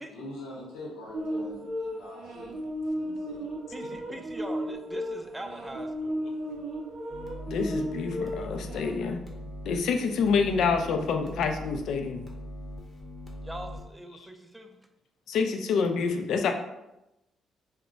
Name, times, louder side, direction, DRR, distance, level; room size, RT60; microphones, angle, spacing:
voice 1, 0.0-2.5 2.9-3.4, left 1 dB, 90° left, -3 dB, 0.8 m, -43 dB
sound 1, 1.1-8.9, equal, 80° right, 0.5 m, -34 dB
voice 2, 3.7-6.2 13.4-14.7, right 1 dB, 15° right, 4 dB, 0.4 m, -41 dB
sound 2, 7.1-13.8, left 1 dB, 25° left, 0.7 m, -41 dB
voice 3, 7.5-9.2 9.6-12.2 15.3-16.5, left 5 dB, 75° left, 5 dB, 0.3 m, -27 dB
2.2 x 2.1 x 3.8 m, 0.91 s
cardioid pair, 90°, 0 cm